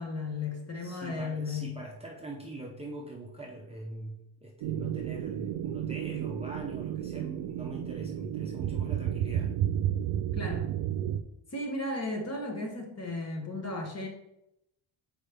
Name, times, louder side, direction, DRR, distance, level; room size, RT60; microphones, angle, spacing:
voice 1, 0.0-1.8 10.3-10.7 11.5-14.1, left 2 dB, 30° left, 2 dB, 1.3 m, -35 dB
voice 2, 0.8-9.6, right 1 dB, 15° right, -2 dB, 0.6 m, -42 dB
sound 1, 4.6-11.2, right 11 dB, 75° right, 0.6 m, -32 dB
7.2 x 4.6 x 3.4 m, 0.85 s
cardioid pair, 150°, 49 cm